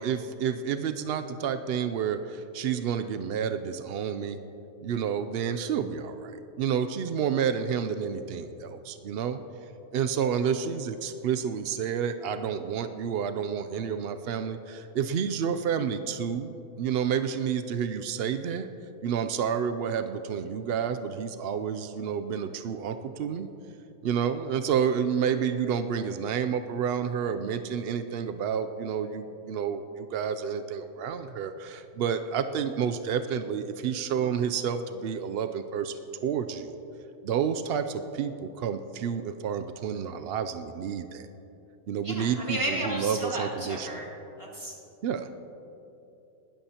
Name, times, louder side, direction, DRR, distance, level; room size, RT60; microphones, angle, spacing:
voice 1, 0.0-4.4 4.8-9.4 9.9-18.7 19.0-23.5 24.0-36.8 37.2-41.3 41.9-44.0 45.0-45.3, right 7 dB, 85° right, 9 dB, 0.5 m, -30 dB
voice 2, 42.0-44.1 44.4-44.7, right 1 dB, 20° right, -5 dB, 2.2 m, -33 dB
20.5 x 13.0 x 2.9 m, 2.9 s
omnidirectional pair, 1.6 m